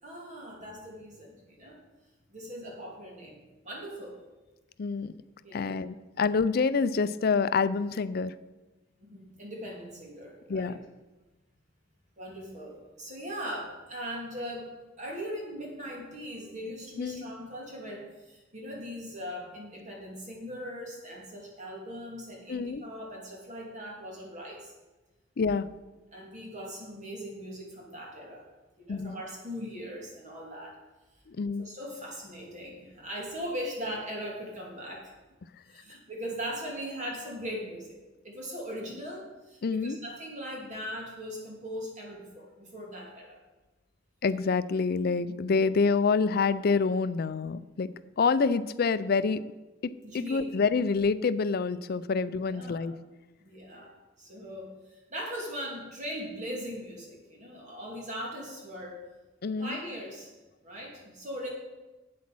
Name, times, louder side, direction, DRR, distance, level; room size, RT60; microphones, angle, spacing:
voice 1, 0.0-1.8 2.3-4.2 5.4-5.8 9.0-10.8 12.2-24.7 26.1-28.4 28.8-30.8 31.6-35.1 35.7-38.0 38.2-43.4 50.0-50.4 52.4-52.9 53.4-59.0 59.6-60.3 60.6-61.5, equal, 40° right, -1 dB, 2.8 m, -40 dB
voice 2, 4.8-5.1 5.5-8.3 10.5-10.8 17.0-17.3 22.5-22.8 25.4-25.7 28.9-29.2 31.3-31.6 39.6-40.0 44.2-47.9 48.2-49.4 49.8-53.0 59.4-59.8, left 4 dB, 55° left, 15 dB, 0.4 m, -27 dB
8.5 x 8.0 x 6.2 m, 1.1 s
head